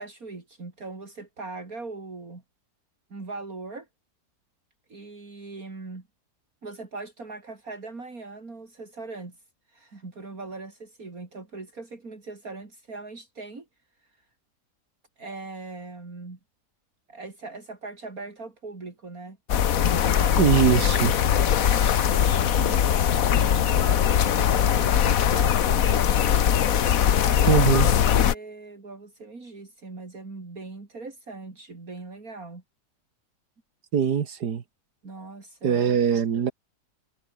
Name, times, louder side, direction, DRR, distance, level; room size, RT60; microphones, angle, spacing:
voice 1, 0.0-2.4 3.1-3.9 4.9-6.1 6.6-9.4 9.7-13.7 15.2-16.4 17.1-19.4 19.8-26.0 27.2-32.6 35.0-35.9, right 3 dB, 60° right, 4.1 m, -40 dB
sound 1, 19.5-28.3, left 9 dB, 60° left, 1.4 m, -21 dB
voice 2, 20.4-21.1 22.6-22.8 27.5-27.9 33.9-34.6 35.6-36.5, right 8 dB, 75° right, 2.0 m, -22 dB
omnidirectional pair, 1.7 m